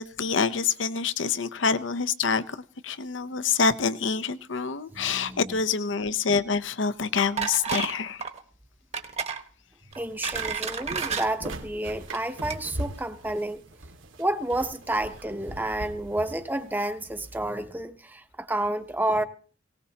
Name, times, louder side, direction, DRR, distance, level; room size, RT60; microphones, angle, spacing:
voice 1, 0.0-8.2, left 5 dB, 70° left, 0.7 m, -26 dB
voice 2, 4.9-5.5 10.0-13.6 14.2-19.2, right 1 dB, 10° right, 0.8 m, -30 dB
sound 1, 7.4-7.9 8.2-8.4 8.9-9.4 9.9-11.3 12.0-12.2 12.5-12.6, right 6 dB, 35° right, 1.3 m, -30 dB
sound 2, 9.9-17.3, right 1 dB, 90° right, 2.0 m, -40 dB
19.0 x 18.5 x 2.9 m
head